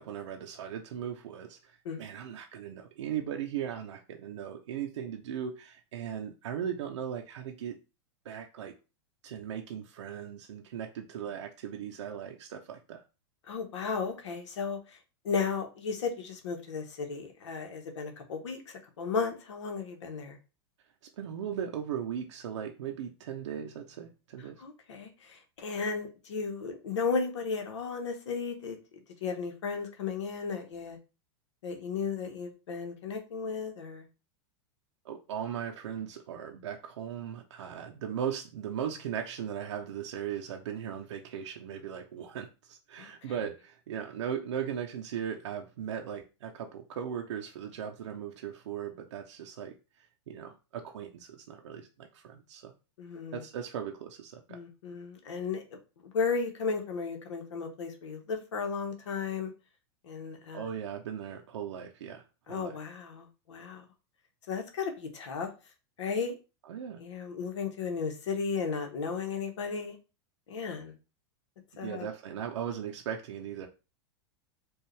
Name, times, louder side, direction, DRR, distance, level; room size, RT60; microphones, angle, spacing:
voice 1, 0.0-7.7 8.2-8.7 9.2-13.0 21.2-24.6 35.0-52.7 53.3-54.6 60.5-62.8 66.7-67.0 71.8-73.7, right 8 dB, 80° right, 0.6 m, -38 dB
voice 2, 13.5-15.0 15.2-20.4 24.4-28.8 29.2-31.0 31.6-34.0 43.0-43.1 53.0-53.4 54.5-55.8 56.1-59.5 60.0-60.6 62.5-63.8 64.5-65.5 66.0-66.4 67.0-70.0 70.5-70.9 71.8-72.1, left 5 dB, 85° left, 1.0 m, -34 dB
4.6 x 2.4 x 3.2 m
hypercardioid pair, 120°, 15 cm